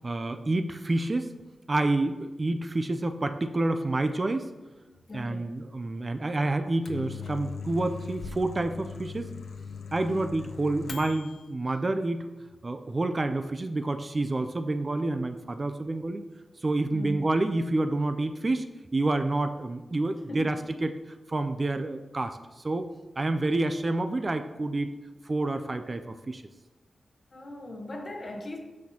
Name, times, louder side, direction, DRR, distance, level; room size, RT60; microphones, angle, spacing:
voice 1, 0.0-1.4 1.7-4.5 5.1-9.3 9.9-12.2 12.6-16.2 16.6-20.9 21.3-22.9 23.2-24.9 25.3-26.4, right 2 dB, 30° right, 0.3 m, -28 dB
voice 2, 4.8-5.5 16.9-17.3 20.3-20.6 27.3-28.6, left 1 dB, 40° left, 1.0 m, -39 dB
Microwave oven, 6.6-11.4, left 5 dB, 80° left, 0.4 m, -40 dB
12.5 x 4.2 x 2.8 m
wide cardioid pair, 130°, 0 cm